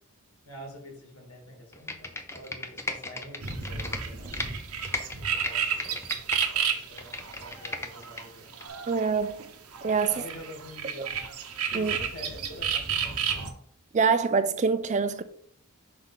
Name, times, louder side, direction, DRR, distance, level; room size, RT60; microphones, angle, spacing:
voice 1, 0.5-4.6 5.2-8.5 10.0-11.3 11.7-13.5, left 1 dB, 85° left, 2.6 m, -47 dB
Computer keyboard, 1.7-4.5 4.8-6.5 6.8-8.2 8.6-8.7, left 2 dB, 10° left, 0.6 m, -35 dB
sound 1, 3.4-9.4 9.7-13.5, right 7 dB, 85° right, 1.0 m, -32 dB
voice 2, 8.9-9.5 9.8-10.1 11.0-11.1 11.7-12.0 13.9-15.2, right 5 dB, 30° right, 0.4 m, -25 dB
5.9 x 3.5 x 5.7 m
head